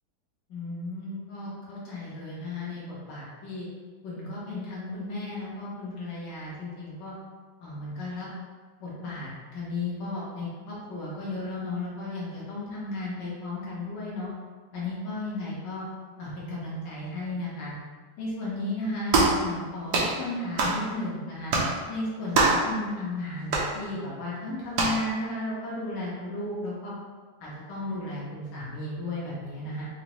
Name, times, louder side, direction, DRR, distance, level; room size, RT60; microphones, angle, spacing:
voice 1, 0.5-3.6 4.0-7.1 7.6-8.3 8.8-14.3 14.7-15.8 16.2-17.7 18.2-21.5 21.9-26.9 27.4-29.9, left 2 dB, 60° left, -7 dB, 1.5 m, -34 dB
sound 1, 19.1-19.4 19.9-20.1 20.6-20.8 21.5-21.7 22.3-22.7 23.5-23.7 24.7-25.0, right 3 dB, 65° right, 1.1 m, -22 dB
5.1 x 2.2 x 2.9 m, 1.5 s
omnidirectional pair, 2.2 m